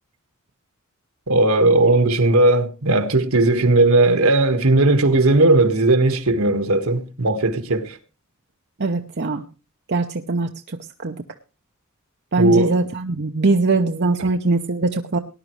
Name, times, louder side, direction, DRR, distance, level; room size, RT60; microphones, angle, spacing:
voice 1, 1.3-8.0 12.4-12.8, right 2 dB, 75° right, 1.6 m, -17 dB
voice 2, 8.8-9.4 9.9-11.2 12.3-15.2, right 3 dB, 50° right, 0.8 m, -21 dB
19.0 x 11.0 x 3.2 m
head